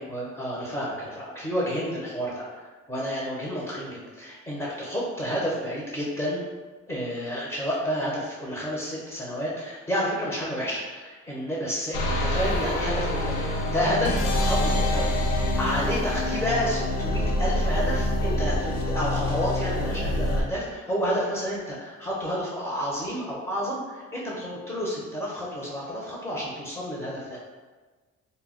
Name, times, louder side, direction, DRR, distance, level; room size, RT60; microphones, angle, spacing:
voice 1, 0.0-6.4 6.9-27.5, equal, 10° left, -6 dB, 0.6 m, -30 dB
sound 1, 11.9-20.4, left 1 dB, 85° left, 0.5 m, -26 dB
2.1 x 2.0 x 3.6 m, 1.3 s
cardioid pair, 90°, 30 cm